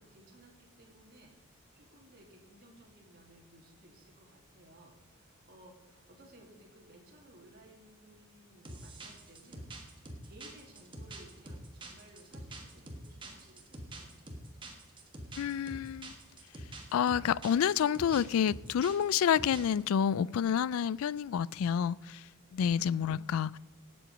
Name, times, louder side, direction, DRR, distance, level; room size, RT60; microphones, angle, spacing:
voice 1, 0.0-14.1, right 1 dB, 45° right, 2.2 m, -58 dB
sound 1, 8.7-19.8, right 1 dB, 20° right, 1.4 m, -46 dB
voice 2, 15.4-16.1 16.9-22.2 22.5-23.6, left 8 dB, 75° left, 0.3 m, -29 dB
18.0 x 7.8 x 5.2 m
head